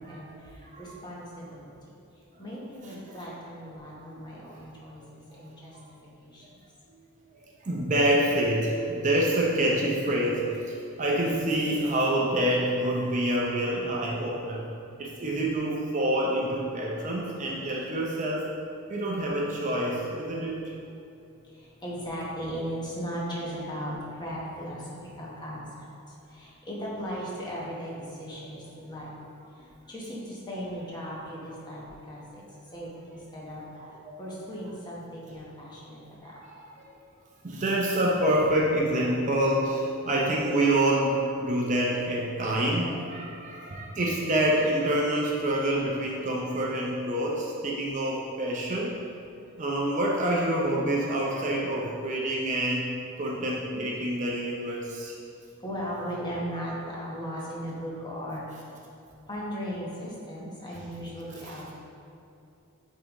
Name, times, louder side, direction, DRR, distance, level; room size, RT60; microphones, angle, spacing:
voice 1, 0.0-1.7 2.4-6.5 21.4-29.1 29.5-32.4 32.7-36.4 55.3-58.6 59.3-61.7, equal, 20° left, -5 dB, 1.0 m, -37 dB
voice 2, 4.1-4.6 7.4-14.6 15.0-18.5 18.9-20.7 33.8-34.1 36.3-36.6 37.4-48.9 49.6-52.9 53.2-55.1 61.4-61.5, right 1 dB, 35° right, -3 dB, 0.5 m, -27 dB
8.5 x 3.7 x 3.0 m, 2.6 s
head